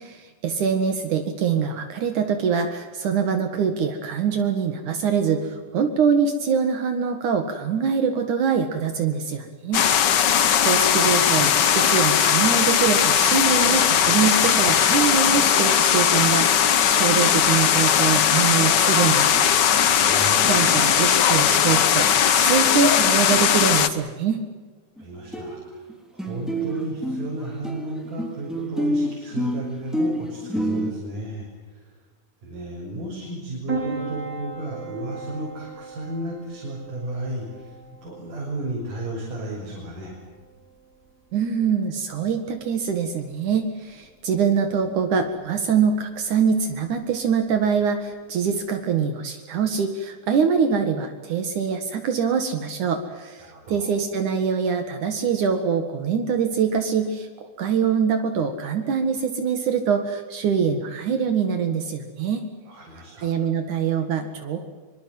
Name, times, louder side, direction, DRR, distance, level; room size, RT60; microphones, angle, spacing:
voice 1, 0.0-9.8 10.6-19.4 19.7-20.0 20.4-24.4 41.3-62.5 63.2-64.6, right 6 dB, 70° right, 6 dB, 3.3 m, -24 dB
sound 1, 9.7-23.9, left 8 dB, 75° left, 0.9 m, -19 dB
voice 2, 19.9-20.6 25.0-31.9 32.4-40.1 53.4-53.9 62.7-63.3, right 1 dB, 90° right, -3 dB, 7.6 m, -34 dB
sound 2, 25.0-25.1 25.3-25.9 26.2-30.9, right 1 dB, ahead, 3.5 m, -27 dB
Piano, 33.7-48.7, right 3 dB, 35° right, 5.8 m, -39 dB
25.0 x 24.5 x 7.8 m, 1.4 s
omnidirectional pair, 3.7 m